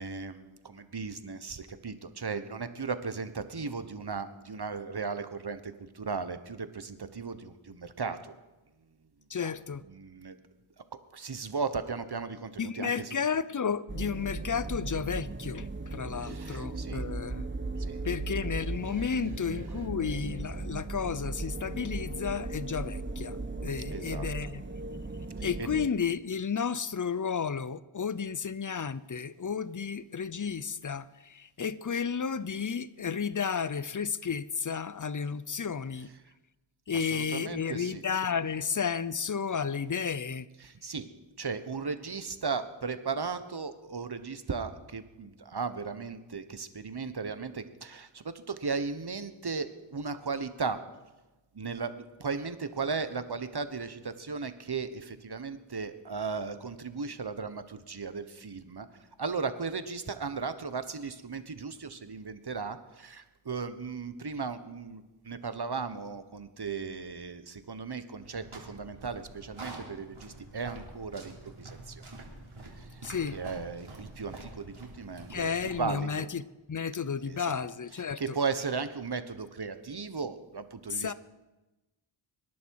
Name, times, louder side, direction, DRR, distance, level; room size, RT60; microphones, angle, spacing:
voice 1, 0.0-8.3 9.4-9.5 9.8-10.3 11.1-13.1 16.2-17.0 17.8-18.0 18.8-19.1 19.5-19.9 23.9-24.3 25.6-25.7 36.0-36.1 36.9-38.0 40.6-41.1 41.4-50.8 51.5-58.9 59.2-72.1 72.8-76.3 77.2-77.6 77.9-81.1, right 4 dB, 50° right, 1.2 m, -36 dB
voice 2, 9.3-9.8 12.6-17.5 18.0-24.6 25.4-36.1 36.9-40.5 73.0-73.4 75.3-76.4 76.7-78.4 80.9-81.1, left 6 dB, 40° left, 0.6 m, -32 dB
sound 1, 13.9-25.9, right 3 dB, 25° right, 1.0 m, -37 dB
sound 2, 68.2-75.8, right 2 dB, 75° right, 3.5 m, -47 dB
25.0 x 11.0 x 4.8 m
wide cardioid pair, 45°, 50 cm